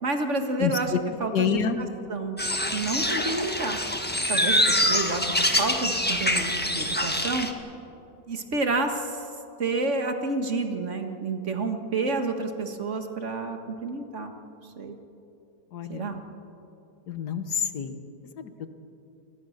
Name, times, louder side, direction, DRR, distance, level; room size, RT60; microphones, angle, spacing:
voice 1, 0.0-0.9 1.2-2.4 2.7-3.8 4.3-7.5 8.3-9.2 9.6-14.3 14.8-15.0 15.9-16.2, right 3 dB, 45° right, 5 dB, 2.0 m, -29 dB
voice 2, 0.6-1.0 1.3-1.8 15.7-16.1 17.1-18.0 18.4-18.5, left 7 dB, 70° left, 9 dB, 1.8 m, -27 dB
sound 1, 2.4-7.5, left 1 dB, 5° left, 1.4 m, -25 dB
28.5 x 21.0 x 6.6 m, 2.9 s
omnidirectional pair, 1.8 m